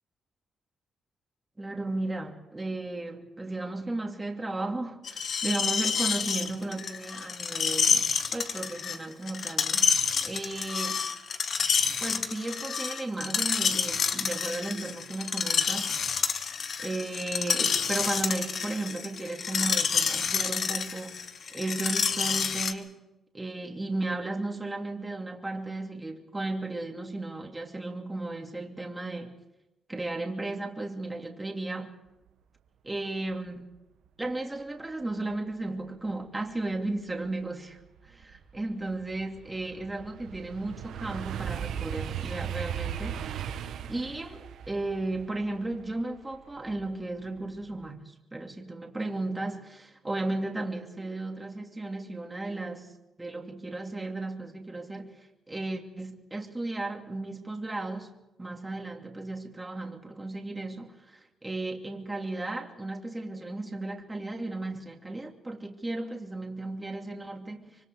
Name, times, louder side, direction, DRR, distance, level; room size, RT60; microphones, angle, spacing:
voice 1, 1.6-8.0 8.3-11.1 12.0-16.1 16.8-21.2 21.5-23.1 23.3-29.3 29.9-32.0 32.8-33.7 34.2-37.8 38.0-43.3 43.9-48.0 48.3-52.9 53.2-55.2 55.5-58.1 58.4-67.8, right 2 dB, 15° right, 2.8 m, -35 dB
Screech, 5.0-22.7, left 6 dB, 55° left, 1.5 m, -28 dB
sound 1, 37.4-37.5 38.0-47.0 47.4-47.8, right 9 dB, 80° right, 1.2 m, -37 dB
25.0 x 24.5 x 4.8 m
cardioid pair, 110°, 0 cm